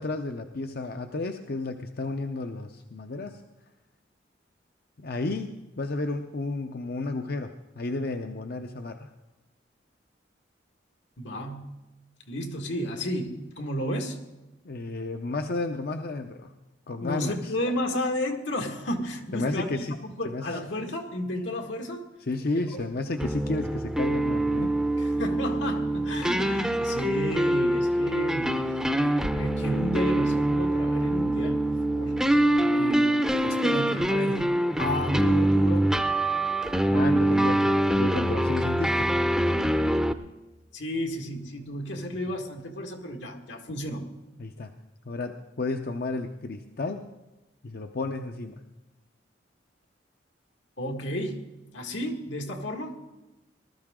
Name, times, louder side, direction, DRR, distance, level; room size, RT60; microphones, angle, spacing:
voice 1, 0.0-3.4 5.0-9.1 14.6-16.5 16.9-17.6 19.3-19.9 20.2-20.6 22.2-24.7 36.9-39.1 41.9-42.1 44.4-44.7 45.1-47.0 47.6-48.6, left 2 dB, 55° left, 6 dB, 0.6 m, -32 dB
voice 2, 11.2-11.7 12.3-14.2 17.0-19.7 20.0-22.0 22.5-22.8 25.0-28.6 29.3-32.2 32.7-34.5 34.8-35.8 40.7-44.1 50.8-51.4 51.7-53.2, left 1 dB, 85° left, 3 dB, 1.8 m, -32 dB
sound 1, 23.2-40.1, right 1 dB, 5° right, 0.6 m, -24 dB
20.0 x 13.0 x 3.7 m, 1.0 s
head